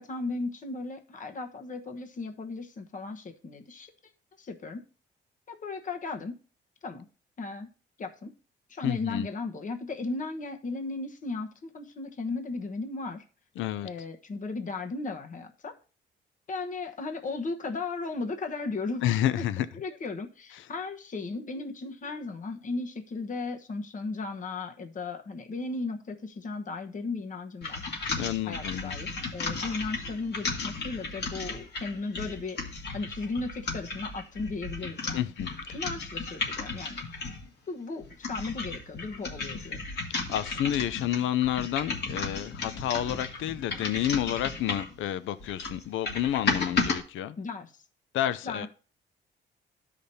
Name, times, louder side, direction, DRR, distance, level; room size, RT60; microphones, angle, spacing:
voice 1, 0.0-3.9 4.4-4.8 5.5-6.4 6.8-7.1 7.4-7.7 8.0-8.3 8.7-13.2 13.8-15.7 16.5-19.0 19.4-19.5 19.7-27.8 28.5-32.6 32.9-35.2 35.7-37.0 37.7-39.9 47.4-47.7 48.4-48.7, left 3 dB, 40° left, 1.1 m, -36 dB
voice 2, 8.8-9.3 13.6-13.9 19.0-19.7 20.6-20.7 28.2-28.9 35.1-35.8 40.3-47.4 48.1-48.7, left 12 dB, 75° left, 0.5 m, -30 dB
sound 1, 27.6-37.5 38.0-45.0 45.4-47.0, left 4 dB, 60° left, 2.0 m, -34 dB
13.0 x 5.1 x 2.7 m
cardioid pair, 90°, 20 cm